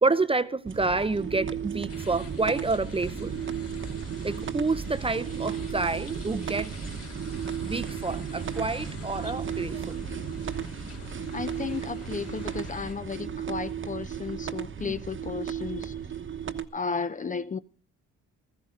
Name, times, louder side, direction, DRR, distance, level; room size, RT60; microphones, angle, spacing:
voice 1, 0.0-3.4 4.2-6.7 7.6-10.0 14.8-14.9, right 3 dB, 20° right, 0.6 m, -28 dB
sound 1, 0.7-16.7, right 8 dB, 40° right, 1.1 m, -35 dB
sound 2, 1.9-12.9, left 4 dB, 50° left, 2.5 m, -45 dB
voice 2, 11.3-16.0 16.7-17.6, left 5 dB, 25° left, 0.6 m, -34 dB
16.0 x 14.0 x 3.7 m
cardioid pair, 90°, 30 cm